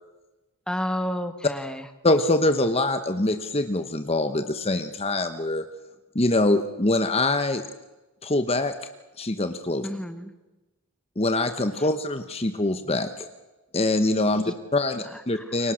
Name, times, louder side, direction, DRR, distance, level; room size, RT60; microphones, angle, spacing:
voice 1, 0.7-1.8 9.8-10.3 14.4-14.5 15.1-15.5, equal, 5° left, 9 dB, 1.3 m, -31 dB
voice 2, 2.0-5.6 6.1-7.6 8.2-8.7 9.2-9.9 11.2-13.3 13.7-14.4 14.7-15.7, left 2 dB, 25° left, 9 dB, 1.1 m, -24 dB
29.0 x 24.0 x 6.5 m, 1.1 s
head